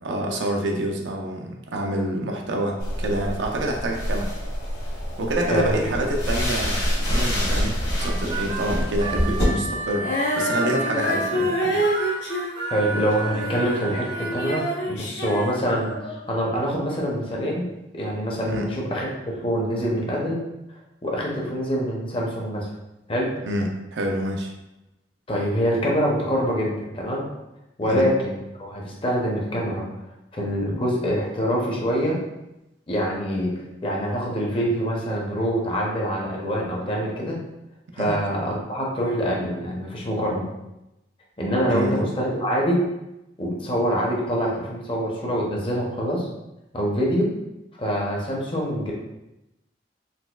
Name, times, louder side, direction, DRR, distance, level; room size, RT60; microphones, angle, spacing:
voice 1, 0.0-4.3 5.2-10.1 10.3-11.8 18.5-18.7 23.4-24.5 27.9-28.0 38.0-38.2 41.7-42.1, right 1 dB, 85° right, 1 dB, 0.5 m, -27 dB
sound 1, 2.8-9.4, equal, 65° left, 1.2 m, -26 dB
voice 2, 5.5-5.8 12.7-17.7 17.9-20.4 21.0-22.7 23.1-23.3 25.3-27.2 27.8-29.9 30.3-32.2 32.9-33.5 33.8-37.4 37.9-40.5 41.4-42.9 43.4-46.3 46.7-47.3 47.8-48.9, equal, 30° left, -2 dB, 0.5 m, -25 dB
Harmonica, 8.0-14.6, right 2 dB, 30° right, 0.5 m, -32 dB
Female singing, 10.0-16.2, equal, 85° left, 0.7 m, -27 dB
4.0 x 2.4 x 2.3 m, 0.93 s
head